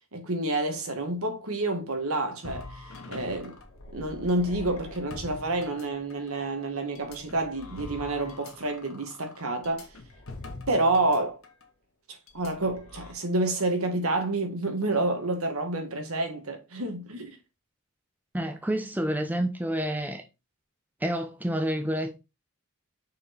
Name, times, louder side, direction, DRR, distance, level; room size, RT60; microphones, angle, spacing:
voice 1, 0.1-3.6 3.9-9.9 10.7-11.4 12.3-17.4, right 2 dB, 75° right, 2.1 m, -29 dB
sound 1, 2.4-6.3 7.0-11.2 11.4-11.6 12.3-13.1, left 2 dB, 70° left, 1.7 m, -43 dB
voice 2, 18.3-20.2 21.0-22.2, equal, 10° right, 0.8 m, -29 dB
6.3 x 4.6 x 4.5 m
head